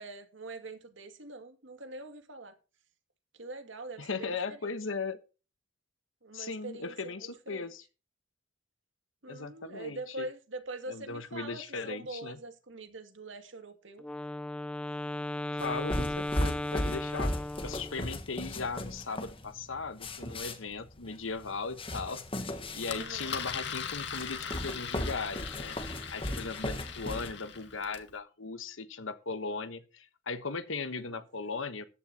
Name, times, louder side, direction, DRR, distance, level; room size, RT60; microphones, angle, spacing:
voice 1, 0.0-2.6 3.4-4.6 6.2-7.7 9.2-14.0 22.9-23.4 31.0-31.2, right 2 dB, 70° right, 2.4 m, -43 dB
voice 2, 4.0-5.2 6.3-7.8 9.3-10.3 10.9-12.4 15.5-17.3 17.6-25.8 26.1-31.9, left 4 dB, 80° left, 1.2 m, -38 dB
Wind instrument woodwind instrument, 14.0-18.1, left 1 dB, 5° left, 0.5 m, -36 dB
sound 1, 15.6-27.3, left 1 dB, 30° left, 1.5 m, -37 dB
Engine, 22.8-28.1, left 7 dB, 60° left, 2.3 m, -40 dB
14.5 x 11.5 x 2.9 m
head